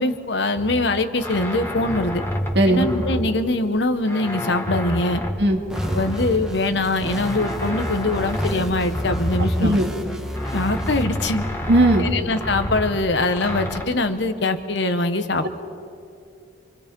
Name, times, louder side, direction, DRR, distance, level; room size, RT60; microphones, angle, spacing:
voice 1, 0.0-2.2 2.7-5.2 5.9-9.8 10.5-11.4 12.0-15.5, left 2 dB, 60° left, 9 dB, 1.1 m, -23 dB
sound 1, 0.6-3.8 4.1-6.7 7.1-10.0 10.3-13.9, equal, 10° left, 1.7 m, -28 dB
voice 2, 2.6-2.9 5.4-5.6 9.4-9.9 11.7-12.1 15.4-15.5, right 1 dB, 60° right, 3 dB, 2.0 m, -18 dB
sound 2, 5.7-11.0, equal, 5° right, 1.3 m, -32 dB
28.0 x 23.5 x 5.3 m, 2.4 s
head